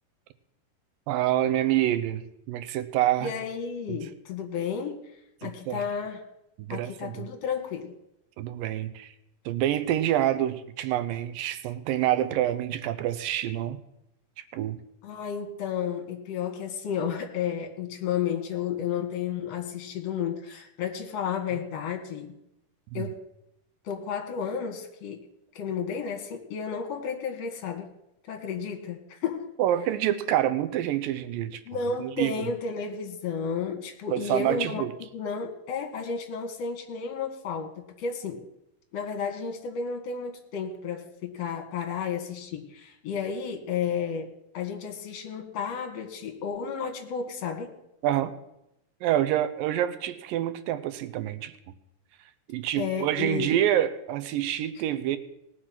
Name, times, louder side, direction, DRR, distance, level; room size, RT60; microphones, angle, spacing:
voice 1, 1.1-3.3 5.4-5.8 6.6-7.3 8.4-9.1 9.5-13.8 14.5-14.8 22.9-23.1 29.6-31.6 32.0-32.5 34.1-34.9 48.0-48.3 49.0-51.5 52.5-55.2, right 12 dB, 85° right, 11 dB, 2.4 m, -27 dB
voice 2, 3.2-5.1 5.4-6.2 6.7-7.9 15.0-22.3 22.9-23.1 23.8-25.2 25.5-27.9 28.3-29.5 31.7-34.8 35.1-38.4 38.9-44.3 44.5-47.7 52.7-53.5, left 6 dB, 55° left, 3 dB, 2.6 m, -32 dB
19.0 x 6.4 x 5.9 m, 0.83 s
omnidirectional pair, 4.0 m